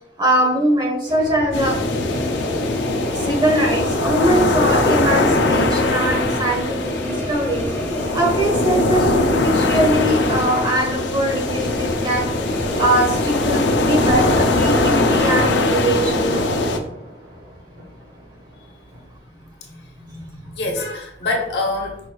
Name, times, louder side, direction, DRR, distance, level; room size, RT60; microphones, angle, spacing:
voice 1, 0.2-1.8 3.1-7.6 8.1-12.3 12.8-16.3, right 1 dB, 25° right, -1 dB, 1.3 m, -21 dB
sound 1, 1.1-15.8, left 1 dB, 15° left, 0.7 m, -30 dB
sound 2, 1.5-16.8, left 2 dB, 90° left, 0.6 m, -21 dB
Thunder, 13.9-19.2, equal, 85° right, 1.7 m, -33 dB
voice 2, 19.6-22.0, left 2 dB, 65° left, 1 dB, 1.0 m, -26 dB
5.0 x 4.5 x 2.3 m, 0.77 s
head